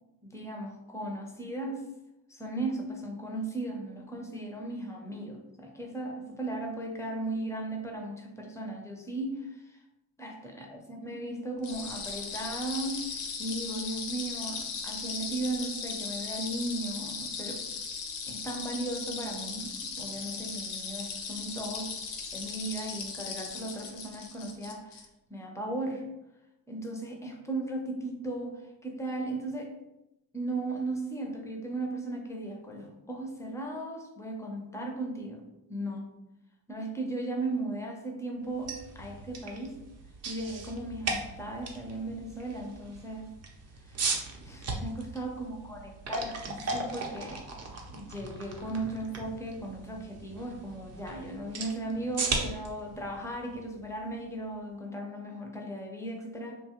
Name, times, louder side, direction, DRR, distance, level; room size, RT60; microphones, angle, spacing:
voice 1, 0.2-1.8 2.3-9.8 10.2-17.7 18.3-21.9 22.3-26.1 26.7-29.8 30.3-36.1 36.7-39.8 40.2-43.3 43.8-44.2 44.4-47.4 47.9-56.6, right 2 dB, 5° left, 2 dB, 0.5 m, -36 dB
sound 1, 11.6-25.1, left 5 dB, 90° left, 0.7 m, -38 dB
sound 2, 38.5-54.4, right 3 dB, 40° right, 0.6 m, -38 dB
2.9 x 2.2 x 2.8 m, 0.92 s
cardioid pair, 95°, 42 cm